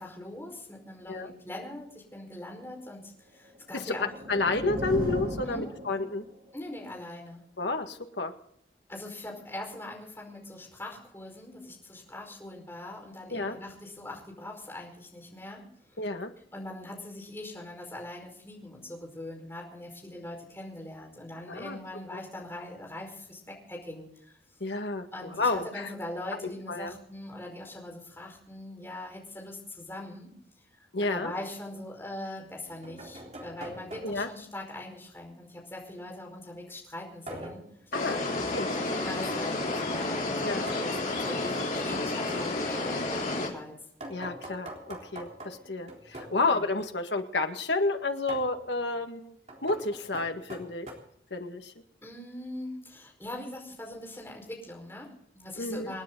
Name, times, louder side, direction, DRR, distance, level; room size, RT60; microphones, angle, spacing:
voice 1, 0.0-4.1 5.4-5.7 6.5-7.4 8.9-16.0 16.5-24.4 25.1-30.3 30.7-37.9 38.5-43.8 46.4-46.6 52.0-56.0, left 1 dB, 15° left, 0 dB, 5.0 m, -42 dB
sound 1, 3.5-6.4, equal, 55° right, 7.0 m, -36 dB
voice 2, 3.7-6.2 7.6-8.3 13.3-13.6 16.0-16.3 21.5-21.8 24.6-25.9 26.7-26.9 30.9-31.3 34.0-34.3 37.9-38.7 40.4-40.7 44.1-49.4 49.6-50.9 51.3-51.7 55.6-55.9, left 3 dB, 85° left, 5 dB, 1.9 m, -30 dB
sound 2, 32.4-34.4 37.3-37.7 40.4-42.5 44.0-46.4 48.3-48.6 49.5-50.9, right 1 dB, 40° right, 3.7 m, -43 dB
sound 3, 37.9-43.5, left 2 dB, 45° left, 3.7 m, -31 dB
28.0 x 10.0 x 4.0 m, 0.70 s
head